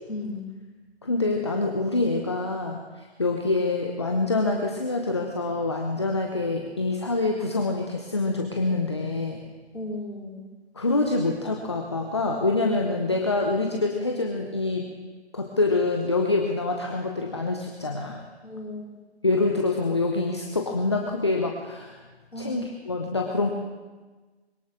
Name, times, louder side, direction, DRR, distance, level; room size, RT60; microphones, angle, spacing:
voice 1, 0.1-0.6 9.7-10.4 18.4-18.9 22.3-22.6, left 2 dB, 70° left, -2 dB, 4.1 m, -35 dB
voice 2, 1.0-9.4 10.8-14.9 15.3-18.2 19.2-22.0 22.4-23.5, left 3 dB, 25° left, 2 dB, 0.8 m, -26 dB
21.5 x 18.5 x 3.6 m, 1.3 s
figure-of-eight pair, 160°, 33 cm